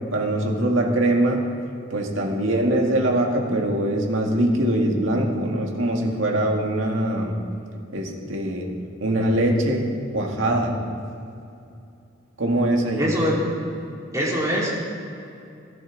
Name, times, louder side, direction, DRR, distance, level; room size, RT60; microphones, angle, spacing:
voice 1, 0.1-1.4 1.9-7.4 7.9-8.7 9.0-10.7 12.4-13.1, right 1 dB, 85° right, 1 dB, 2.0 m, -22 dB
voice 2, 13.0-13.4 14.1-14.7, equal, 15° right, -5 dB, 3.1 m, -23 dB
15.0 x 14.5 x 4.0 m, 2.6 s
head